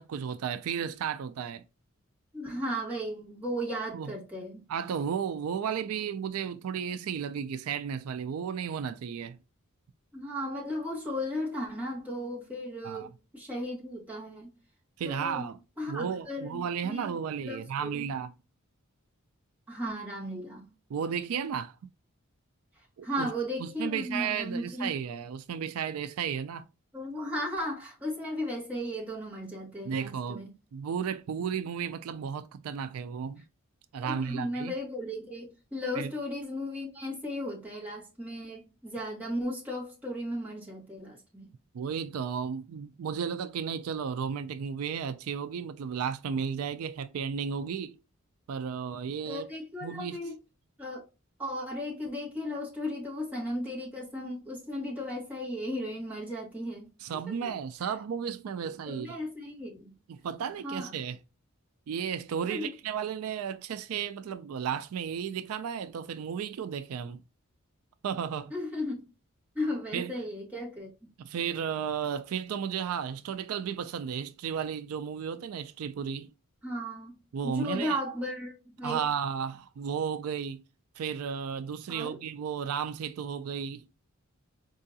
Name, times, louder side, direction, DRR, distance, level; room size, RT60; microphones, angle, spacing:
voice 1, 0.0-1.6 3.9-4.1 4.7-9.4 12.8-13.1 15.0-15.6 15.9-18.3 20.9-21.7 23.0-23.3 23.6-26.6 29.9-30.4 30.7-33.4 33.9-34.7 36.0-36.1 41.7-48.0 48.5-49.5 49.8-50.2 57.0-59.2 60.1-61.2 61.9-67.2 68.0-68.5 69.9-70.1 71.2-76.3 77.3-78.0 78.8-80.6 81.0-83.8, right 7 dB, 80° right, 0.4 m, -33 dB
voice 2, 2.3-4.6 10.1-14.5 15.0-15.5 15.8-17.1 17.4-18.1 19.7-20.7 23.0-24.9 26.9-30.5 34.0-41.5 49.2-50.4 50.8-51.1 51.4-56.9 57.4-57.5 57.8-57.9 58.9-59.9 60.6-60.9 62.5-62.7 68.5-69.0 69.5-70.9 76.6-77.1 77.4-79.0 81.9-82.2, equal, 5° right, 1.3 m, -35 dB
4.6 x 2.5 x 2.6 m
head